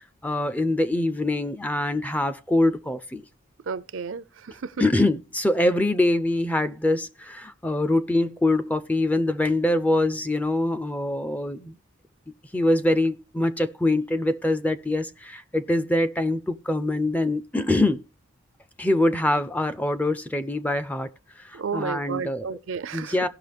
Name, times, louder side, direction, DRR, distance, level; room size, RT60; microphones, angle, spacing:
voice 1, 0.0-3.2 4.8-11.8 12.5-18.0 18.8-21.1 21.4-22.6 22.9-23.3, left 1 dB, 5° left, 0.4 m, -24 dB
voice 2, 3.7-4.7 21.5-23.1, right 5 dB, 65° right, 0.5 m, -32 dB
17.5 x 6.1 x 3.4 m
head